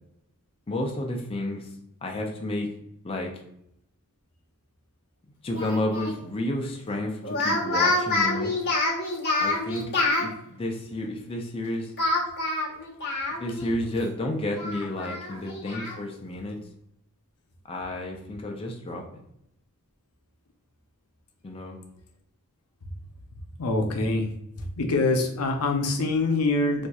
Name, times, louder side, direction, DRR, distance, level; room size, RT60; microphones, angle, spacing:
voice 1, 0.7-1.7 2.0-2.7 3.0-3.3 5.4-8.5 9.4-11.9 13.4-16.6 17.7-19.2 21.4-21.8, left 1 dB, 25° left, 1 dB, 0.4 m, -31 dB
Speech, 5.5-6.2 7.2-10.3 12.0-13.7 14.0-14.1 14.5-16.0, left 2 dB, 50° left, 0.9 m, -27 dB
voice 2, 23.6-24.3 24.6-26.9, left 2 dB, 85° left, 3 dB, 0.6 m, -24 dB
4.3 x 2.6 x 2.3 m, 0.75 s
head